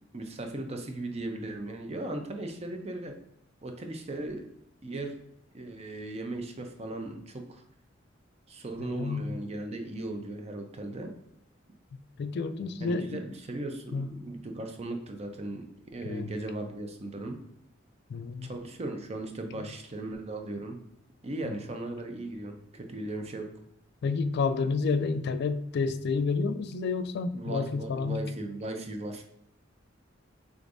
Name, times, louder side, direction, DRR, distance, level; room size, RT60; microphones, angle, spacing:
voice 1, 0.1-3.1 3.6-4.4 4.8-5.2 5.5-7.6 8.5-11.1 12.8-15.7 15.9-17.4 18.4-20.8 21.2-23.5 27.3-29.2, right 2 dB, 35° right, 4 dB, 0.6 m, -37 dB
voice 2, 8.8-9.3 12.2-13.2 13.9-14.1 16.0-16.3 18.1-18.5 24.0-28.2, left 4 dB, 55° left, 11 dB, 0.3 m, -30 dB
5.0 x 3.5 x 2.6 m, 0.76 s
head